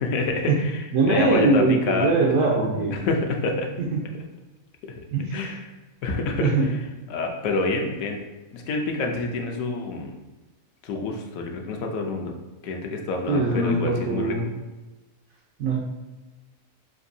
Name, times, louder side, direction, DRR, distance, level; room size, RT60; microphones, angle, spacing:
voice 1, 0.0-3.7 4.8-4.9 5.3-5.7 6.0-6.8 7.1-8.2 8.5-10.1 10.8-12.3 12.6-14.5, left 3 dB, 75° left, 2 dB, 1.1 m, -28 dB
voice 2, 0.9-2.9 3.9-4.0 5.1-5.4 6.4-6.7 13.3-14.4 15.6-15.8, right 3 dB, 80° right, -3 dB, 1.1 m, -21 dB
6.0 x 2.6 x 2.6 m, 1.1 s
omnidirectional pair, 1.5 m